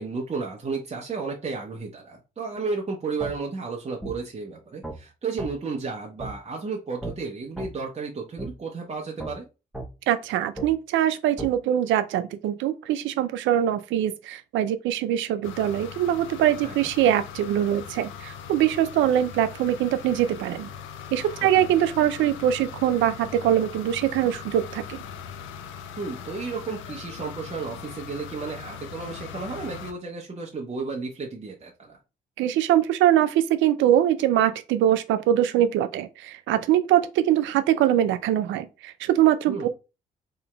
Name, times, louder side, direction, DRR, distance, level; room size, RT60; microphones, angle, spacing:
voice 1, 0.0-9.5 16.6-16.9 21.4-21.7 26.0-32.0 39.5-39.7, right 4 dB, 30° right, 0.8 m, -33 dB
sound 1, 3.2-3.3 4.0-4.2 4.8-5.0 5.4-5.5 6.2-6.3 7.0-7.1 7.6-7.7 8.4-8.5 9.2-9.3 9.7-9.9 10.6-10.7 11.4-11.5, right 1 dB, ahead, 0.9 m, -34 dB
voice 2, 10.1-20.7 21.1-24.8 32.4-39.7, right 11 dB, 70° right, 0.4 m, -23 dB
sound 2, 15.4-29.9, left 7 dB, 70° left, 0.5 m, -40 dB
3.7 x 2.9 x 2.2 m
hypercardioid pair, 45°, 21 cm